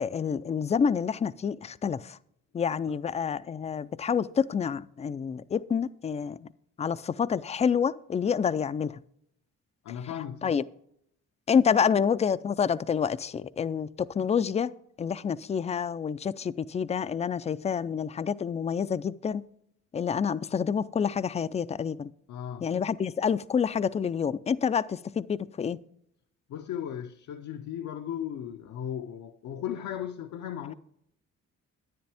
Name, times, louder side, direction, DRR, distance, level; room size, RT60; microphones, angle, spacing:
voice 1, 0.0-2.2 2.5-6.5 6.8-9.0 10.4-10.6 11.5-14.7 15.0-19.5 19.9-22.1 22.6-25.8, left 7 dB, 25° left, 0.3 m, -28 dB
voice 2, 9.8-10.6 22.3-22.8 26.5-30.7, left 10 dB, 70° left, 0.6 m, -36 dB
10.5 x 9.6 x 3.4 m
cardioid pair, 90°, 30 cm